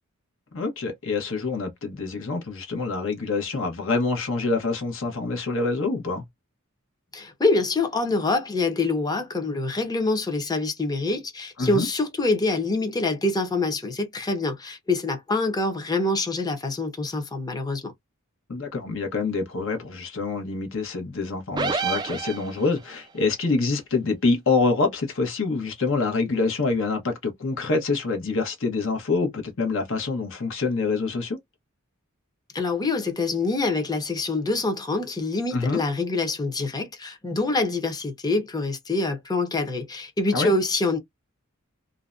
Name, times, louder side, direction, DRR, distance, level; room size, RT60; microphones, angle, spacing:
voice 1, 0.5-6.2 11.6-11.9 18.5-31.4 35.5-35.8 40.3-40.5, left 3 dB, 65° left, 1.0 m, -26 dB
voice 2, 7.1-17.9 32.5-41.0, left 3 dB, 20° left, 0.7 m, -25 dB
sound 1, 21.6-22.9, right 5 dB, 20° right, 0.4 m, -28 dB
2.6 x 2.1 x 2.4 m
head